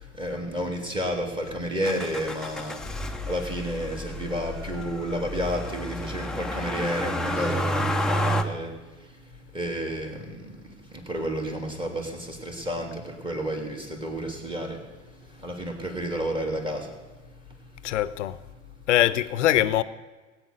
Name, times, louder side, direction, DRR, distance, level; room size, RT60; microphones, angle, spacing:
voice 1, 0.2-2.8 3.3-8.7 9.5-10.5 11.1-12.9 13.2-14.8 15.4-16.9, equal, 15° right, 3.0 m, -30 dB
Motor vehicle (road), 1.8-8.4, equal, ahead, 0.9 m, -30 dB
voice 2, 17.8-18.4 18.9-19.8, left 13 dB, 75° left, 0.8 m, -22 dB
16.5 x 9.2 x 6.7 m
hypercardioid pair, 95°, 36 cm